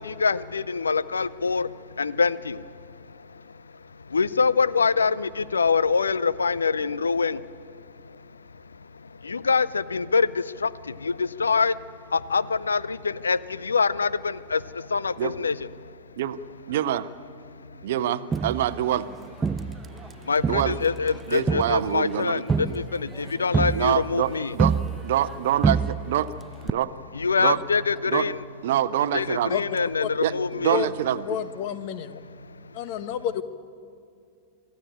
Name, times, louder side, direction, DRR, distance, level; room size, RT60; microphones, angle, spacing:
voice 1, 0.0-16.0 17.5-17.9 19.5-24.6 27.1-28.4 29.1-30.8 32.4-32.6, left 5 dB, 75° left, 19 dB, 0.5 m, -26 dB
voice 2, 16.7-17.1 17.8-19.1 20.5-20.7 21.3-22.4 23.7-24.7 25.0-26.3 26.6-26.9 27.4-27.6 28.1-28.3 28.6-29.5 30.2-31.2, right 12 dB, 55° right, 15 dB, 0.8 m, -25 dB
Crowd, 18.3-20.1 20.4-25.4 25.6-26.3 26.7-26.8, right 5 dB, 15° right, 0.5 m, -27 dB
voice 3, 31.3-32.2 32.7-33.4, left 9 dB, 45° left, 13 dB, 1.2 m, -29 dB
25.5 x 14.5 x 8.9 m, 2.4 s
figure-of-eight pair, 90°, 0 cm